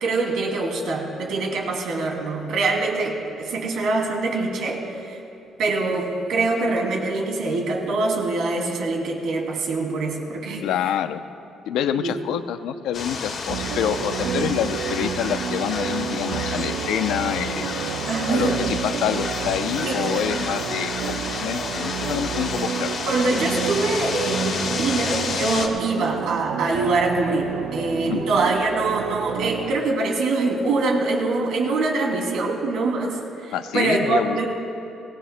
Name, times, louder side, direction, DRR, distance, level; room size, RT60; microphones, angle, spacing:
voice 1, 0.0-5.2 5.6-10.7 12.0-12.1 18.1-18.6 19.8-20.1 23.1-34.5, right 3 dB, 65° right, 0 dB, 2.7 m, -24 dB
voice 2, 10.6-11.2 11.7-17.7 18.3-22.9 28.1-28.2 33.5-34.4, left 10 dB, 90° left, 10 dB, 0.6 m, -27 dB
sound 1, 12.9-25.7, left 4 dB, 50° left, 1.7 m, -30 dB
sound 2, 13.5-29.8, right 9 dB, 90° right, 0.5 m, -30 dB
24.5 x 19.0 x 2.2 m, 2.7 s
cardioid pair, 165°, 0 cm